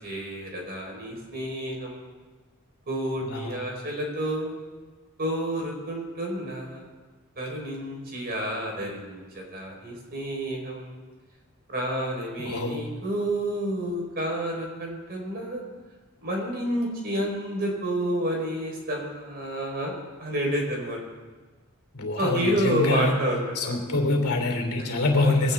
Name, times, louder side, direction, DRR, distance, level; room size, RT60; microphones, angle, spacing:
voice 1, 0.0-2.1 2.9-4.6 5.2-6.9 7.4-11.0 11.7-15.6 16.2-19.9 20.2-21.0 22.2-23.7 25.2-25.3, right 1 dB, 45° right, 0 dB, 4.3 m, -29 dB
voice 2, 3.2-3.6 12.4-12.8 21.9-23.1 23.5-25.5, left 2 dB, 75° left, 3 dB, 2.9 m, -25 dB
21.5 x 17.5 x 3.6 m, 1.4 s
head